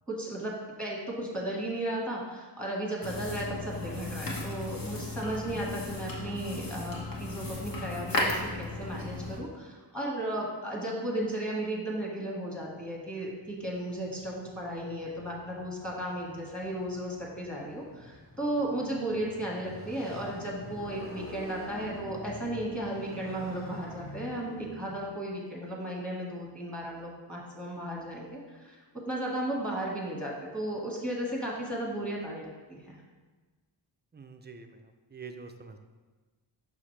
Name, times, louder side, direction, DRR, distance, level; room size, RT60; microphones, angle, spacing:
voice 1, 0.1-33.0, right 1 dB, ahead, -3 dB, 1.4 m, -35 dB
sound 1, 3.0-9.4, left 2 dB, 50° left, 1.3 m, -35 dB
Motorcycle, 12.7-25.1, left 1 dB, 30° left, 1.0 m, -47 dB
voice 2, 34.1-35.8, right 4 dB, 25° right, 6 dB, 0.4 m, -46 dB
6.0 x 5.7 x 3.2 m, 1.3 s
wide cardioid pair, 120°, 45 cm